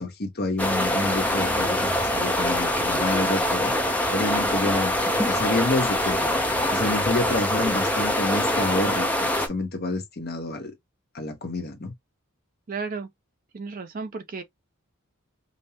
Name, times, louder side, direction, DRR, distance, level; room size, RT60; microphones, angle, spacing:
voice 1, 0.0-3.7 4.1-4.9 5.2-6.3 6.7-9.1 9.3-10.7 11.1-11.9, left 2 dB, 45° left, 0.9 m, -28 dB
sound 1, 0.6-9.5, left 1 dB, 5° left, 0.5 m, -24 dB
voice 2, 12.7-13.1 13.5-14.4, right 4 dB, 40° right, 0.4 m, -33 dB
5.2 x 2.0 x 2.8 m
head